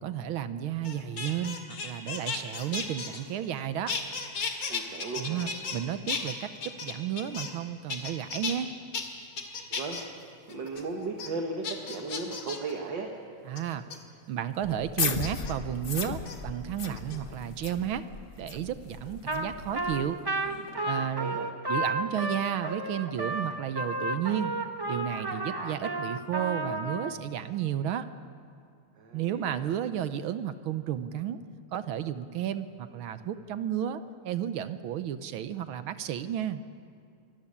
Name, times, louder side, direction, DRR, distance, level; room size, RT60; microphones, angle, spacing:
voice 1, 0.0-3.9 5.2-8.7 13.5-13.8 14.3-18.0 18.4-20.2 20.8-21.4 21.7-24.5 24.9-28.1 29.1-31.4 31.7-36.6, right 10 dB, 75° right, 11 dB, 1.6 m, -32 dB
sound 1, 0.8-3.6 3.9-5.8 6.1-7.6 7.9-8.6 8.9-9.0 9.4-10.0 10.5-10.8 11.2-11.3 11.6-12.7 13.6-14.0 15.2-15.5 16.1-16.4 16.9-17.5 18.9-20.1 20.4-20.8, left 5 dB, 80° left, 3.0 m, -35 dB
voice 2, 4.7-5.4 9.7-13.1 21.0-21.5 29.0-29.8, right 3 dB, 60° right, 2 dB, 2.2 m, -37 dB
sound 2, 14.6-20.0, left 5 dB, 45° left, 0.7 m, -36 dB
Trumpet, 19.3-19.5 19.7-27.1, right 2 dB, 25° right, 0.5 m, -32 dB
25.0 x 14.0 x 9.9 m, 2.4 s
omnidirectional pair, 2.4 m